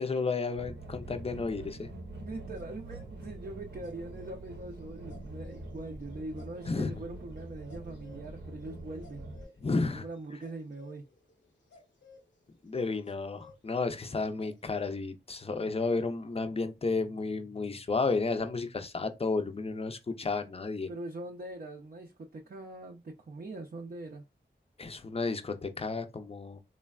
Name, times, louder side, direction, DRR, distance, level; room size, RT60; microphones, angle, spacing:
voice 1, 0.0-1.9 6.7-6.9 9.6-10.1 12.6-20.9 24.8-26.6, left 3 dB, 35° left, 0.5 m, -32 dB
sound 1, 0.6-9.4, right 2 dB, 80° right, 0.7 m, -45 dB
voice 2, 2.2-9.3 10.0-11.1 20.9-24.2, right 2 dB, 50° right, 0.5 m, -42 dB
sound 2, 2.5-3.1 3.5-12.3 13.0-13.6 13.9-14.0 14.4-14.9, left 3 dB, 80° left, 0.7 m, -58 dB
3.2 x 2.2 x 2.3 m
cardioid pair, 50°, 18 cm